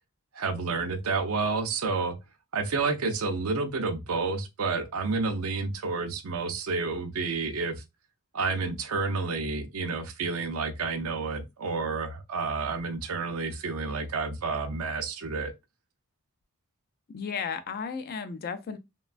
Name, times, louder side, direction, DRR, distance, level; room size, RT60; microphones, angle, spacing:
voice 1, 0.3-2.2 2.5-7.7 8.3-15.5, right 4 dB, 70° right, 0.5 m, -30 dB
voice 2, 17.1-18.8, left 6 dB, 45° left, 0.3 m, -34 dB
3.0 x 2.2 x 2.4 m
head